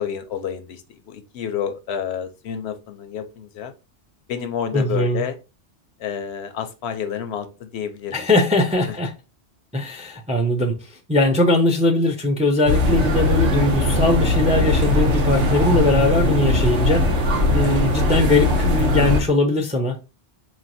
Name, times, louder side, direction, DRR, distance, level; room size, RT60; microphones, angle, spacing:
voice 1, 0.0-3.7 4.3-5.4 6.0-8.2 8.9-9.0 17.6-17.8, left 8 dB, 70° left, 9 dB, 0.8 m, -29 dB
voice 2, 4.7-5.2 8.1-9.1 9.7-10.7 11.1-17.1 17.5-20.0, left 2 dB, 10° right, 3 dB, 0.4 m, -20 dB
sound 1, 12.7-19.2, left 1 dB, 80° right, 1.2 m, -19 dB
4.7 x 3.1 x 2.6 m, 0.29 s
omnidirectional pair, 1.2 m